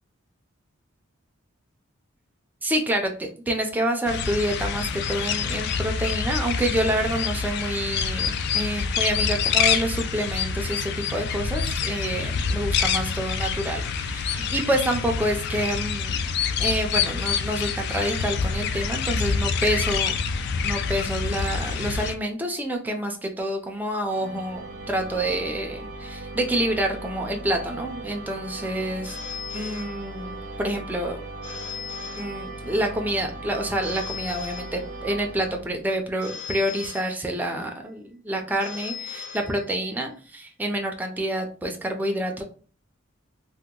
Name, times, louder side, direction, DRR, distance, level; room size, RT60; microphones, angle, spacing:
voice 1, 2.6-16.2 16.6-20.1 20.6-29.2 29.5-31.2 32.2-42.4, right 1 dB, 10° right, 2 dB, 0.4 m, -28 dB
sound 1, 4.1-22.1, left 6 dB, 55° left, 0.3 m, -26 dB
sound 2, 24.1-36.0, right 2 dB, 90° right, 0.7 m, -38 dB
Telephone, 29.0-30.5 31.4-32.9 33.8-35.3 36.2-37.7 38.6-40.1, left 7 dB, 80° left, 1.0 m, -39 dB
2.8 x 2.1 x 3.7 m, 0.40 s
head